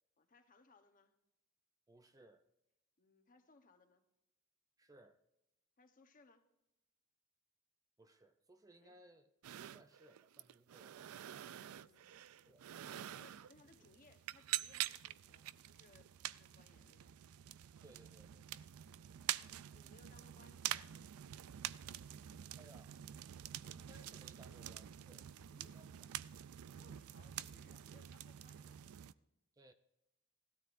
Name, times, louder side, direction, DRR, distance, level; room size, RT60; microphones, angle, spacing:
voice 1, 0.2-1.1 3.0-4.0 5.8-6.5 8.8-9.0 11.3-12.5 12.8-17.2 19.7-20.9 24.4-24.7 25.3-25.8 26.7-28.8, left 3 dB, 40° left, 1.0 m, -67 dB
voice 2, 1.9-2.5 4.8-5.2 8.0-9.3 9.7-11.0 12.1-12.2 12.5-12.6 13.8-13.9 17.8-19.0 22.6-23.0 23.6-25.3 25.7-26.1 29.5-29.7, right 1 dB, 15° right, 0.5 m, -64 dB
sound 1, 9.4-29.1, right 12 dB, 90° right, 0.4 m, -47 dB
17.0 x 13.0 x 2.5 m
head